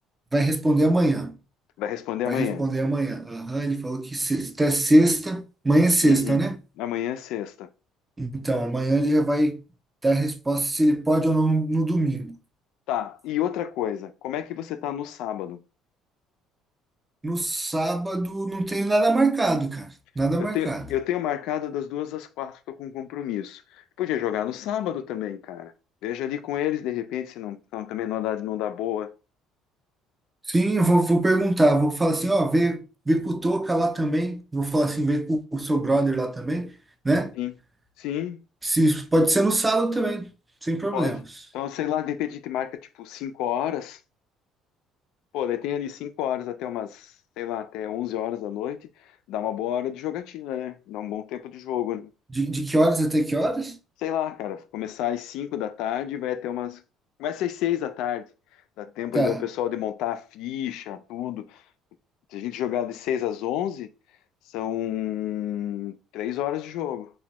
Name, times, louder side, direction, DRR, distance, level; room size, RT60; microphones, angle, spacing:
voice 1, 0.3-1.4 2.3-6.6 8.2-9.6 10.0-12.4 17.2-20.8 30.5-36.7 37.0-37.3 38.6-40.3 40.6-41.2 52.3-53.8 59.1-59.5, right 1 dB, 10° right, 0.3 m, -23 dB
voice 2, 1.8-2.6 6.0-6.4 6.8-7.7 12.9-15.6 20.4-25.7 26.0-29.1 37.4-37.5 38.0-38.4 40.9-41.2 41.5-44.0 45.3-48.9 49.3-52.1 54.0-56.8 57.2-58.3 58.8-61.6 62.3-63.9 64.5-67.1, left 11 dB, 75° left, 0.3 m, -30 dB
3.0 x 2.2 x 2.8 m
cardioid pair, 145°, 0 cm